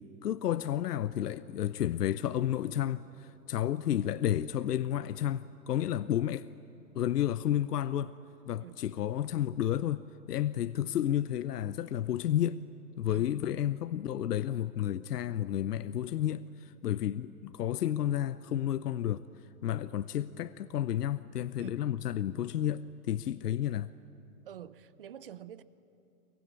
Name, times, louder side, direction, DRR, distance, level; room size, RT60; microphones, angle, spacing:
voice 1, 0.0-6.5 6.9-8.1 8.5-12.6 13.0-19.2 19.6-23.9, left 11 dB, 80° left, 0.8 m, -31 dB
voice 2, 24.4-25.6, right 10 dB, 35° right, 0.7 m, -47 dB
23.5 x 23.0 x 8.7 m
hypercardioid pair, 170°, 47 cm